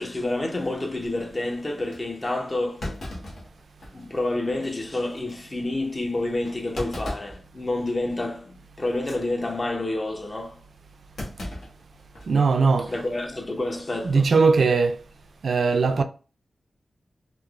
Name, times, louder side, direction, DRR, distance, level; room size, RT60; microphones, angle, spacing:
voice 1, 0.0-3.0 3.9-10.6 12.9-14.2, left 2 dB, 30° left, 0.6 m, -29 dB
Thump thud, 1.3-1.4 1.9-2.0 2.8-4.1 4.5-4.6 5.1-5.3 6.7-7.4 7.9-8.1 8.9-9.2 11.2-12.4 12.7-12.8 13.9-14.3, left 1 dB, 75° left, 1.0 m, -36 dB
voice 2, 12.3-12.9 14.0-15.0 15.4-16.0, right 4 dB, 70° right, 0.3 m, -19 dB
3.1 x 2.0 x 2.3 m
wide cardioid pair, 85°, 0 cm